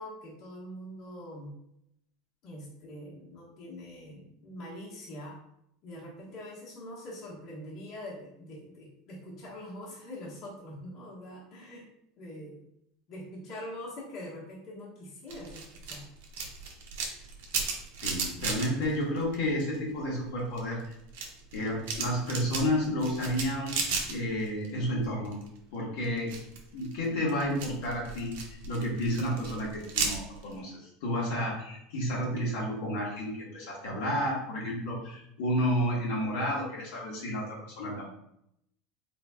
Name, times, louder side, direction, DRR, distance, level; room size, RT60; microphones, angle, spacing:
voice 1, 0.0-1.5 2.4-5.4 5.8-11.9 12.2-12.6 13.1-16.1, left 1 dB, 50° left, -5 dB, 1.4 m, -43 dB
sound 1, 15.3-19.9 20.2-24.7 25.0-25.6 26.0-30.5, right 5 dB, 85° right, 0.8 m, -35 dB
voice 2, 18.0-20.8 21.5-23.7 24.1-25.3 25.7-26.3 26.7-28.3 28.7-38.1, equal, 75° left, -4 dB, 1.4 m, -31 dB
4.2 x 3.7 x 2.3 m, 0.77 s
supercardioid pair, 135°, 0 cm